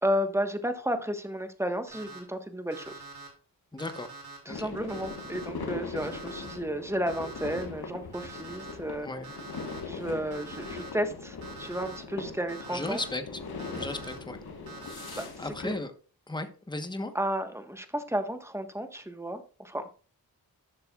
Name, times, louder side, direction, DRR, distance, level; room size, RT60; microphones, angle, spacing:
voice 1, 0.0-3.0 4.4-9.1 9.8-13.0 15.1-15.7 17.1-19.9, equal, 5° right, 1.4 m, -32 dB
Alarm, 1.9-2.2 2.7-3.3 3.8-4.4 4.9-5.5 6.0-6.5 7.1-7.6 8.1-8.7 9.2-9.8 10.3-10.9 11.4-12.0 12.5-13.1 13.6-14.2 14.7-15.3, right 3 dB, 75° right, 3.4 m, -45 dB
voice 2, 3.7-4.1 4.5-4.7 9.0-9.3 12.7-13.2 13.8-14.4 15.1-15.9 16.3-17.1, left 2 dB, 10° left, 1.2 m, -35 dB
sound 1, 4.5-15.8, left 4 dB, 80° left, 1.6 m, -40 dB
12.0 x 6.6 x 2.4 m
cardioid pair, 45°, 37 cm